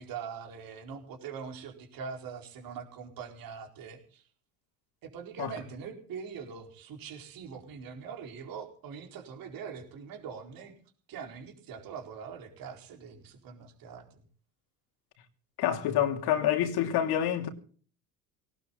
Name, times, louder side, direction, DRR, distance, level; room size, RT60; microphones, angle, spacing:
voice 1, 0.0-4.2 5.0-10.7 11.1-14.2, right 6 dB, 50° right, 4.5 m, -43 dB
voice 2, 15.6-17.5, left 10 dB, 55° left, 3.0 m, -27 dB
18.5 x 18.0 x 3.9 m
hypercardioid pair, 70°, 44 cm